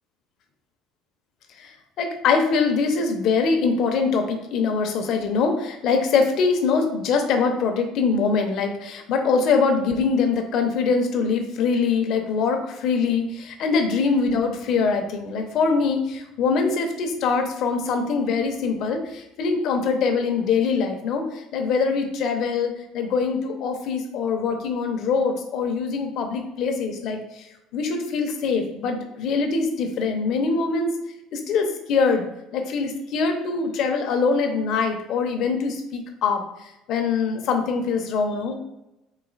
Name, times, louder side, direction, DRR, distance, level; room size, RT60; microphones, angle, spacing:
voice 1, 2.0-21.2 21.5-27.2 27.7-30.9 31.3-32.3 32.5-36.4 36.9-38.6, left 5 dB, 60° left, 5 dB, 0.7 m, -23 dB
4.0 x 2.6 x 3.9 m, 0.94 s
cardioid pair, 120°, 0 cm